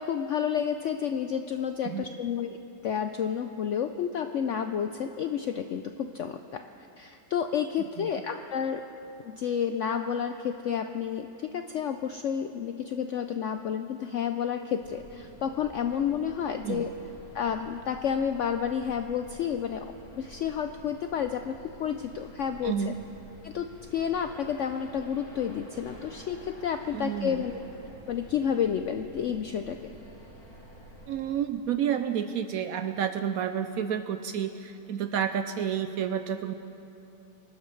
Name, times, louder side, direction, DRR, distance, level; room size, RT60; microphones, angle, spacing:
voice 1, 0.0-2.6 2.8-6.6 7.0-8.8 9.2-16.9 17.3-19.9 20.2-22.9 23.4-27.6 28.1-29.8, left 8 dB, 80° left, 7 dB, 0.6 m, -30 dB
sound 1, 14.8-31.3, equal, 60° left, 3.3 m, -49 dB
voice 2, 22.6-23.0 26.9-27.5 31.1-36.5, right 8 dB, 70° right, 9 dB, 0.9 m, -30 dB
26.0 x 12.5 x 3.2 m, 2.8 s
omnidirectional pair, 1.8 m